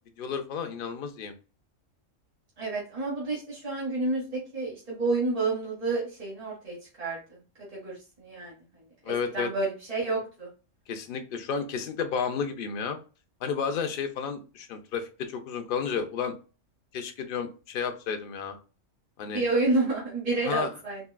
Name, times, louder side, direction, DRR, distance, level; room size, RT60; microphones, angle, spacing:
voice 1, 0.2-1.3 9.0-9.5 10.9-13.0 13.4-16.4 16.9-18.6 19.2-19.4 20.4-20.7, left 6 dB, 55° left, 6 dB, 0.6 m, -32 dB
voice 2, 2.6-4.3 4.5-7.2 7.7-8.5 9.0-10.5 19.3-21.0, right 3 dB, 30° right, -6 dB, 1.1 m, -29 dB
3.9 x 2.2 x 2.2 m, 0.33 s
omnidirectional pair, 1.4 m